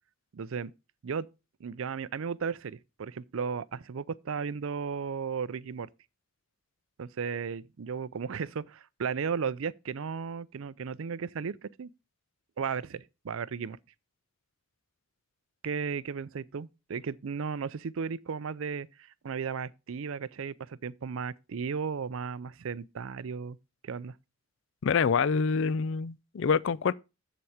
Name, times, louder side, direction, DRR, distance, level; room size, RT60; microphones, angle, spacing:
voice 1, 0.3-0.7 1.0-1.3 1.6-5.9 7.0-11.9 12.6-13.8 15.6-23.6 23.8-24.1, right 6 dB, 65° right, 0.4 m, -35 dB
voice 2, 24.8-26.9, left 5 dB, 55° left, 0.4 m, -26 dB
7.7 x 7.1 x 4.8 m
head